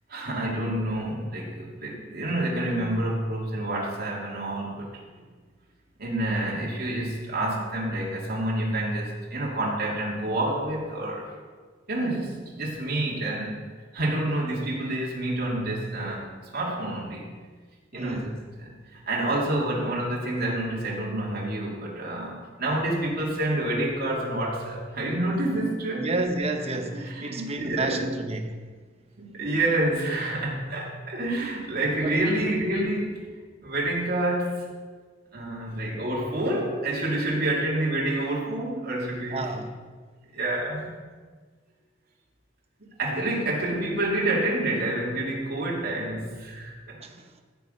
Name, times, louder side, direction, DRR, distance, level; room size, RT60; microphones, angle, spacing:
voice 1, 0.1-4.9 5.1-5.2 6.0-11.3 11.9-13.7 13.9-17.3 17.9-18.3 18.6-26.1 27.0-28.1 29.2-33.2 33.6-34.7 35.3-39.5 40.3-41.0 43.0-47.0, right 1 dB, 55° right, 2.9 m, -28 dB
voice 2, 17.9-18.4 25.9-28.6 32.0-32.5 39.3-39.7 47.0-47.3, right 2 dB, 35° right, 1.0 m, -31 dB
14.5 x 6.2 x 5.3 m
head